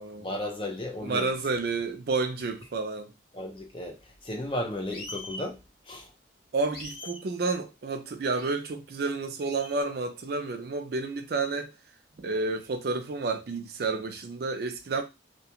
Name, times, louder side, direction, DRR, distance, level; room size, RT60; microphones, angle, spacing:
voice 1, 0.2-1.3 3.3-5.6 5.9-6.1, left 1 dB, 25° left, 0.5 m, -34 dB
voice 2, 1.0-3.1 6.5-11.7 12.2-15.0, right 3 dB, 55° right, 0.4 m, -30 dB
sound 1, 4.9-5.5 6.7-7.2 8.3-8.6 9.4-9.8, left 2 dB, 55° left, 1.3 m, -42 dB
2.3 x 2.2 x 2.8 m
head